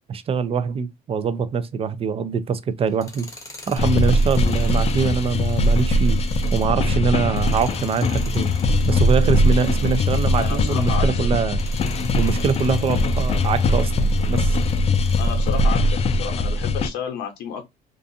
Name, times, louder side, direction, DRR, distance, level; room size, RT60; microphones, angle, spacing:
voice 1, 0.1-3.3 3.7-6.2 6.5-8.5 8.8-11.6 12.2-14.6, right 6 dB, 35° right, 0.4 m, -23 dB
Tools, 2.9-11.1 11.5-15.7, left 2 dB, 20° left, 0.8 m, -44 dB
sound 1, 3.8-16.9, left 1 dB, 40° left, 0.4 m, -20 dB
voice 2, 10.4-11.2 15.2-17.6, left 8 dB, 85° left, 0.7 m, -31 dB
2.5 x 2.4 x 2.5 m
cardioid pair, 110°, 17 cm